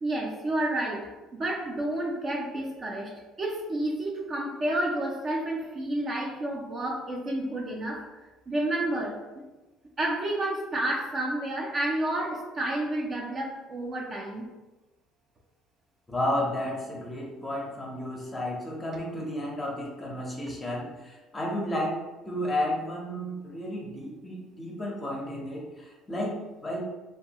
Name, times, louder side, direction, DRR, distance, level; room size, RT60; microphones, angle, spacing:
voice 1, 0.0-3.1 3.4-8.0 8.5-9.2 10.0-14.5, right 1 dB, 30° right, -1 dB, 0.5 m, -30 dB
voice 2, 16.1-21.9 22.2-26.8, left 1 dB, 20° left, -2 dB, 0.6 m, -32 dB
2.7 x 2.3 x 2.8 m, 1.1 s
cardioid pair, 130°, 0 cm